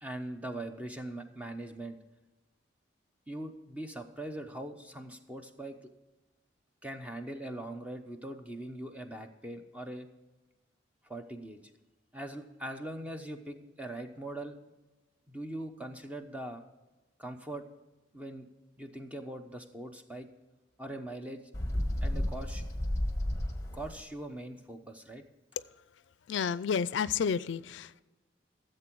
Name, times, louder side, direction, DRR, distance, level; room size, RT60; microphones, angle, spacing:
voice 1, 0.0-2.0 3.3-5.8 6.8-10.1 11.0-11.6 12.1-14.6 15.3-16.6 17.2-17.7 18.1-18.5 18.8-20.3 20.8-21.4 22.0-22.6 23.7-25.2, right 1 dB, 5° right, 5 dB, 0.8 m, -41 dB
Bird, 21.5-24.0, left 1 dB, 15° left, 1.3 m, -32 dB
voice 2, 26.3-28.0, left 6 dB, 80° left, 17 dB, 0.4 m, -31 dB
15.0 x 7.7 x 4.6 m, 1.1 s
head